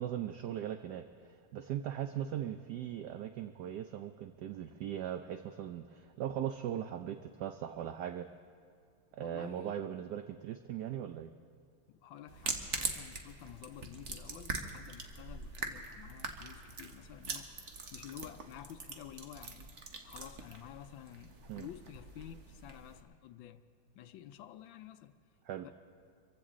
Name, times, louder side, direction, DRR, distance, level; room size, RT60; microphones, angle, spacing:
voice 1, 0.0-8.3 9.1-11.3 21.5-21.7 25.4-25.7, right 10 dB, 70° right, 1.0 m, -39 dB
voice 2, 9.2-9.8 11.9-17.5 17.9-19.7 20.0-23.6 24.0-25.2 25.6-25.7, left 11 dB, 75° left, 1.3 m, -51 dB
sound 1, 12.3-23.0, right 4 dB, 45° right, 1.1 m, -43 dB
25.5 x 15.0 x 3.7 m
omnidirectional pair, 2.3 m